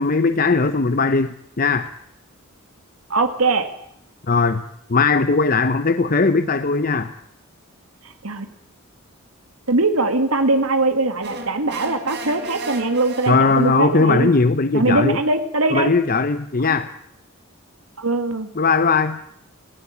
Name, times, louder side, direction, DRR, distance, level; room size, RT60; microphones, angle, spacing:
voice 1, 0.0-1.9 4.3-4.6 4.9-7.1 13.3-15.2 15.7-16.9 18.6-19.2, left 4 dB, 45° left, 11 dB, 0.8 m, -19 dB
voice 2, 3.1-3.7 8.2-8.5 9.7-14.3 14.7-15.9 16.6-16.8 18.0-18.5, right 2 dB, 85° right, 8 dB, 1.9 m, -21 dB
sound 1, 11.2-13.8, right 3 dB, 55° right, 4.0 m, -34 dB
18.0 x 17.0 x 9.9 m, 0.75 s
head